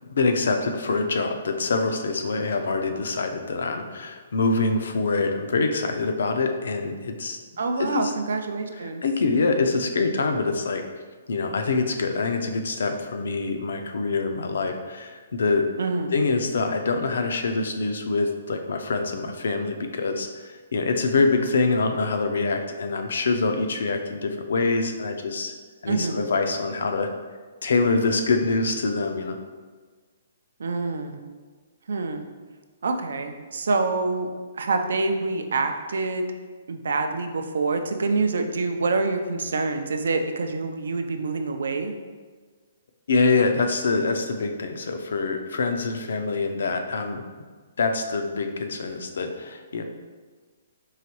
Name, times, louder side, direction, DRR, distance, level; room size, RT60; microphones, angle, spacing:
voice 1, 0.1-7.4 7.8-8.1 9.0-10.8 11.3-15.7 16.1-25.5 25.8-27.1 27.6-29.4 43.1-47.2 47.8-49.8, left 3 dB, 70° left, 6 dB, 0.4 m, -25 dB
voice 2, 7.6-9.0 15.8-16.2 25.9-26.3 30.6-31.2 31.9-32.2 32.8-34.3 34.6-36.2 36.7-41.9, right 3 dB, 80° right, 6 dB, 0.4 m, -26 dB
4.7 x 3.0 x 3.0 m, 1.4 s
hypercardioid pair, 180°, 0 cm